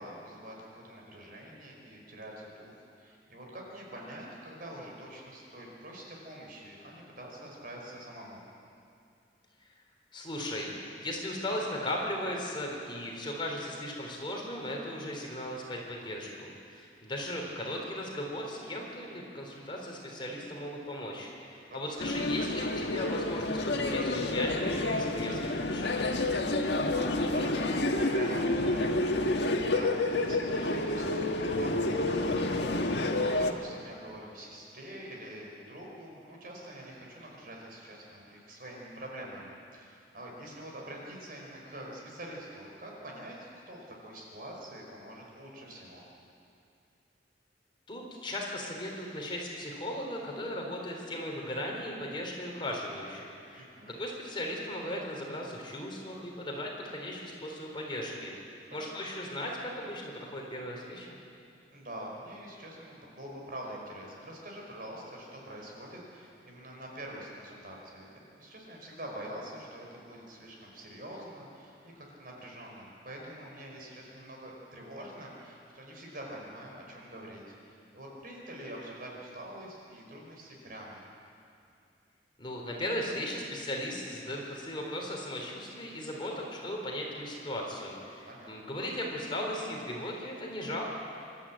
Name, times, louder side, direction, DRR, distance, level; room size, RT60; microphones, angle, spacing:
voice 1, 0.0-8.4 17.6-17.7 21.7-21.9 26.6-46.0 53.5-54.0 58.8-59.0 61.7-68.1 68.4-81.0 88.2-88.7, right 1 dB, 55° right, -1 dB, 5.1 m, -45 dB
voice 2, 10.1-26.2 47.9-53.7 54.0-58.4 58.7-61.2 82.4-90.8, left 1 dB, 30° left, -1 dB, 3.6 m, -37 dB
sound 1, 22.0-33.5, left 2 dB, 75° left, 1.6 m, -29 dB
26.0 x 13.0 x 8.7 m, 2.5 s
head